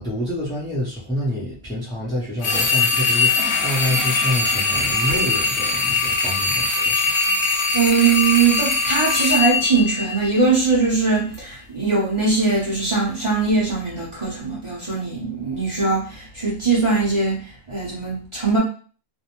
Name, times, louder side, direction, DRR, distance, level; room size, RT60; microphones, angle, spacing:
voice 1, 0.0-7.1, left 1 dB, 5° left, -6 dB, 0.3 m, -27 dB
sound 1, 2.4-10.6, left 4 dB, 65° left, 0.7 m, -21 dB
sound 2, 2.4-10.4 11.2-11.3, left 2 dB, 25° left, 0.8 m, -36 dB
voice 2, 7.7-18.6, right 4 dB, 30° right, -6 dB, 0.7 m, -21 dB
2.5 x 2.0 x 2.9 m, 0.40 s
omnidirectional pair, 1.5 m